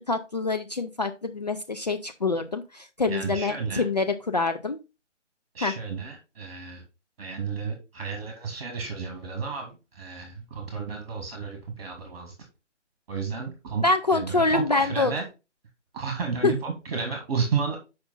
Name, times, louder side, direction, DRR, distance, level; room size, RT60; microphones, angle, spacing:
voice 1, 0.1-4.8 5.6-5.7 13.8-15.1 16.4-16.5, left 3 dB, 35° left, 6 dB, 0.5 m, -25 dB
voice 2, 3.1-3.9 5.5-6.8 7.2-12.3 13.1-13.8 14.1-15.3 15.9-17.8, right 5 dB, 35° right, 3 dB, 1.8 m, -32 dB
7.0 x 5.1 x 4.0 m, 0.27 s
figure-of-eight pair, 145°, 36 cm